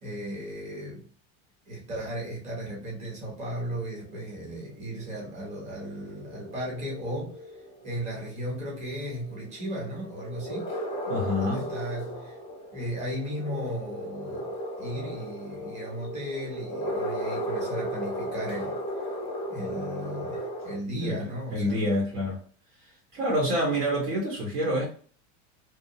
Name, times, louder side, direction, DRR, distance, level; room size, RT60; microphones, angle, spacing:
voice 1, 0.0-1.1 1.7-10.7 11.4-12.4 12.7-18.8 19.5-21.8, equal, 20° right, 0.9 m, -36 dB
sound 1, 3.4-20.7, equal, 20° left, 0.6 m, -36 dB
voice 2, 11.1-11.7 21.0-21.2 21.5-22.4 22.8-24.9, equal, 80° right, 1.3 m, -27 dB
2.7 x 2.1 x 2.7 m
supercardioid pair, 175°, 33 cm